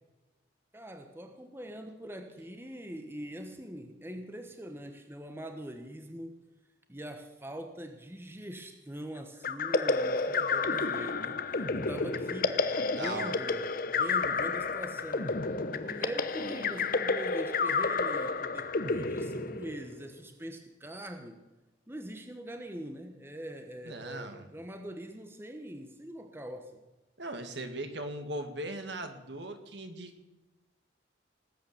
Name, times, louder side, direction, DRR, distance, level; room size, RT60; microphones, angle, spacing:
voice 1, 0.7-6.4 6.9-15.5 15.8-21.5 21.9-26.8, equal, 10° right, 6 dB, 1.0 m, -43 dB
sound 1, 9.4-20.0, left 4 dB, 45° left, 0.8 m, -30 dB
voice 2, 12.7-13.4 23.8-24.5 27.2-30.3, right 1 dB, 60° right, 7 dB, 1.9 m, -39 dB
19.0 x 8.8 x 6.8 m, 1.1 s
head